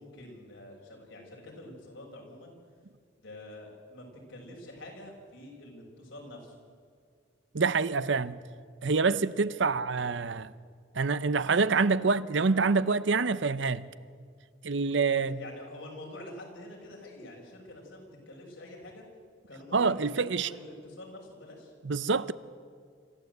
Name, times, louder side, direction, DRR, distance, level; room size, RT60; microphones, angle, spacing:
voice 1, 0.0-2.5 3.2-6.5 9.6-9.7 15.0-19.0 19.5-21.7, left 1 dB, 80° left, 5.9 m, -47 dB
voice 2, 7.5-8.4 8.8-10.5 10.9-13.8 14.6-15.4 19.7-20.5 21.8-22.3, right 4 dB, 70° right, 0.7 m, -26 dB
26.5 x 14.5 x 8.0 m
head